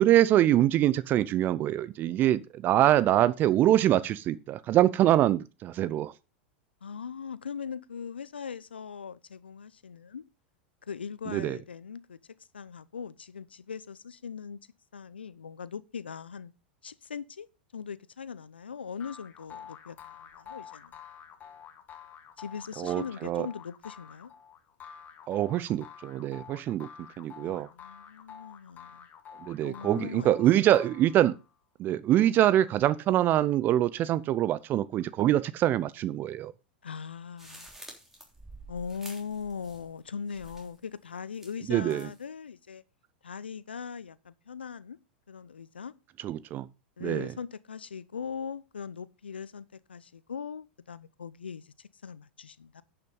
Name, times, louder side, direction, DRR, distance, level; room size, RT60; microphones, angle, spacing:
voice 1, 0.0-6.1 11.3-11.6 22.8-23.5 25.3-26.9 27.2-27.7 29.4-31.3 31.8-36.5 41.7-42.1 46.2-46.7 47.0-47.3, right 13 dB, 35° right, 0.6 m, -24 dB
voice 2, 6.8-10.2 10.9-12.2 12.5-14.6 14.9-16.5 16.8-17.5 17.7-20.9 22.4-24.3 27.4-29.1 29.6-30.3 36.8-37.7 38.7-42.8 43.2-45.0 45.3-45.9 47.0-52.8, left 6 dB, 80° left, 0.7 m, -40 dB
sound 1, 19.0-31.5, left 8 dB, 30° left, 1.7 m, -49 dB
sound 2, 37.4-40.0 40.3-40.8 41.3-42.2, right 1 dB, 5° right, 3.3 m, -49 dB
10.5 x 5.9 x 5.4 m
hypercardioid pair, 95°, 5 cm